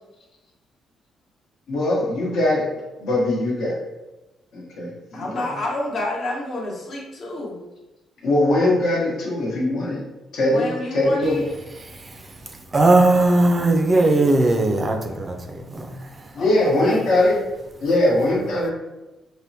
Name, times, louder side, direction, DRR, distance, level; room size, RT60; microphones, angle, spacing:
voice 1, 1.7-2.7 3.0-3.7 4.5-5.5 8.2-10.0 10.3-11.4 16.3-17.4 17.8-18.7, left 1 dB, 75° left, -4 dB, 1.0 m, -21 dB
voice 2, 5.1-7.6 10.5-11.4 16.4-17.4, left 1 dB, 50° left, -3 dB, 1.0 m, -29 dB
voice 3, 11.8-16.4, right 2 dB, 30° right, 4 dB, 0.4 m, -19 dB
3.4 x 2.1 x 2.7 m, 1.1 s
cardioid pair, 90°, 0 cm